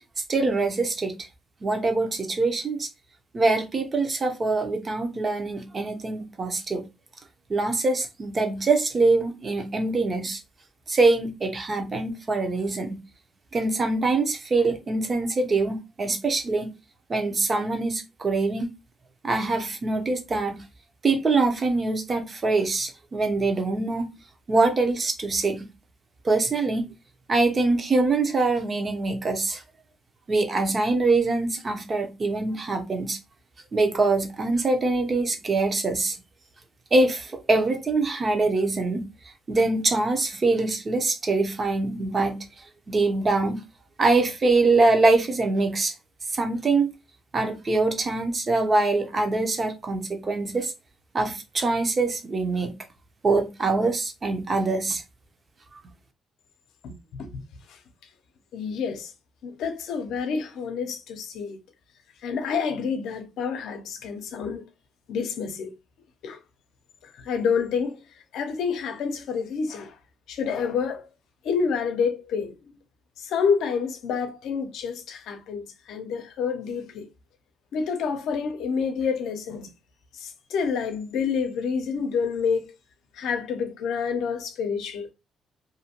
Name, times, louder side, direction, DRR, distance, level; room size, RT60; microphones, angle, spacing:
voice 1, 0.3-1.3 1.6-2.9 3.3-6.8 7.5-10.4 10.9-13.0 13.5-16.7 17.1-18.7 19.2-20.6 21.0-24.1 24.5-25.7 26.2-26.8 27.3-29.6 30.3-33.2 33.7-36.2 36.9-39.0 39.5-42.4 42.9-43.6 44.0-45.9 46.3-46.9 47.3-50.7 51.1-52.8 53.2-55.0 55.7-55.8, right 3 dB, 35° right, 0.7 m, -24 dB
voice 2, 56.8-57.4 57.7-57.8 58.5-59.1 59.4-61.6 62.2-64.6 65.1-65.7 66.2-66.4 67.2-68.0 68.3-69.9 70.3-71.1 71.4-72.5 73.2-77.1 77.7-79.7 80.1-82.7 83.1-85.1, left 6 dB, 80° left, 0.6 m, -28 dB
2.7 x 2.2 x 2.8 m
cardioid pair, 90°, 0 cm